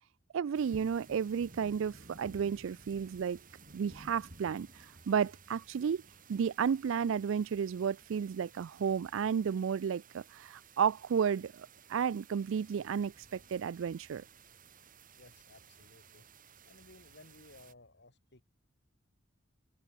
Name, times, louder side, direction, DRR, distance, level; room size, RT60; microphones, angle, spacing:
voice 1, 0.3-3.4 3.7-6.0 6.3-14.2, right 7 dB, 70° right, 0.3 m, -32 dB
sound 1, 0.5-17.7, right 4 dB, 45° right, 3.1 m, -56 dB
voice 2, 15.1-16.3 16.7-18.4, left 2 dB, 60° left, 3.3 m, -58 dB
head